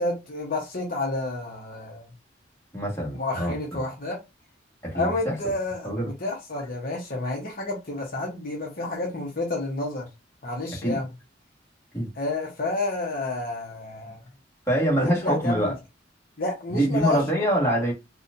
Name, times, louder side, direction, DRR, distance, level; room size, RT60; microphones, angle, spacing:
voice 1, 0.0-2.1 3.2-4.2 4.9-10.1 10.4-11.1 12.2-14.2 15.0-15.7 16.4-17.2, left 2 dB, 50° left, 0.9 m, -30 dB
voice 2, 2.7-3.8 4.8-5.4 5.8-6.1 10.8-11.0 11.9-12.1 14.7-15.7 16.7-17.9, right 1 dB, 15° left, 1.5 m, -25 dB
4.2 x 2.4 x 2.6 m
head